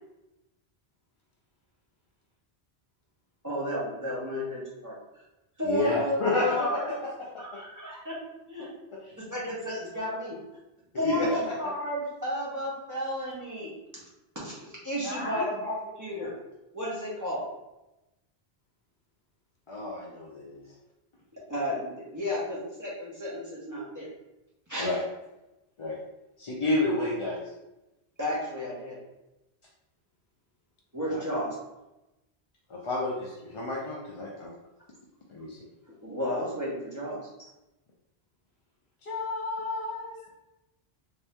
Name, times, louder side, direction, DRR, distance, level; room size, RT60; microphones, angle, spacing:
voice 1, 3.4-4.9 5.6-6.9 7.4-8.2 8.5-8.7 9.2-10.4 11.0-13.7 14.4-16.3 16.7-17.5 21.5-24.1 24.7-25.0 28.2-29.0 30.9-31.5 36.0-37.2, equal, 20° right, -7 dB, 1.0 m, -33 dB
voice 2, 5.6-6.7 7.3-7.4 8.9-9.0 11.0-11.5 19.7-20.6 24.8-25.0 25.8-26.0 26.4-27.4 31.1-31.3 32.7-34.5 35.3-35.6, left 2 dB, 40° left, -5 dB, 0.5 m, -29 dB
voice 3, 11.1-11.4 15.0-15.6 39.0-40.2, left 3 dB, 75° left, 0 dB, 1.1 m, -34 dB
3.4 x 2.8 x 3.5 m, 0.95 s
omnidirectional pair, 1.1 m